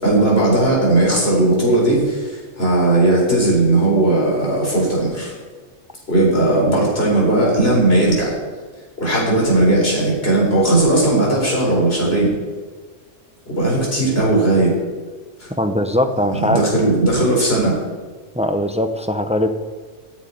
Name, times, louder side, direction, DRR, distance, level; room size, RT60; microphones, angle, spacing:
voice 1, 0.0-5.3 6.1-8.4 9.0-12.4 13.5-14.7 15.4-15.5 16.3-17.8, right 2 dB, 50° left, -4 dB, 4.7 m, -17 dB
voice 2, 15.6-16.6 18.3-19.5, left 1 dB, 5° right, 7 dB, 0.6 m, -20 dB
10.5 x 8.2 x 9.6 m, 1.4 s
omnidirectional pair, 1.3 m